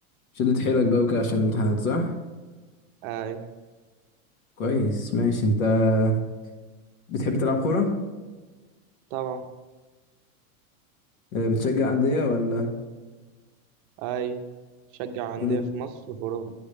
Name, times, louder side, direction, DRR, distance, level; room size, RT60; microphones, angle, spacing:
voice 1, 0.4-2.1 4.6-6.2 7.1-7.9 11.3-12.7 15.4-15.6, left 2 dB, 80° left, 3 dB, 1.7 m, -23 dB
voice 2, 3.0-3.4 9.1-9.4 14.0-14.4 15.0-16.5, right 8 dB, 35° right, 7 dB, 0.7 m, -32 dB
9.5 x 3.4 x 6.7 m, 1.3 s
supercardioid pair, 155°, 42 cm